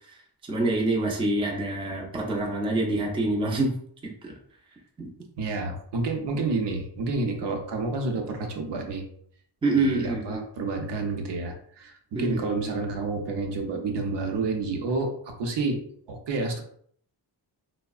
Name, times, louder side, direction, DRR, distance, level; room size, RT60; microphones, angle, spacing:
voice 1, 0.5-3.7 4.2-4.3 5.0-5.1 9.6-10.4 12.1-12.4, right 2 dB, 15° right, -1 dB, 0.4 m, -26 dB
voice 2, 5.4-9.0 9.7-15.8 16.1-16.6, right 3 dB, 75° right, 3 dB, 0.6 m, -29 dB
3.4 x 2.0 x 2.3 m, 0.62 s
wide cardioid pair, 175°, 42 cm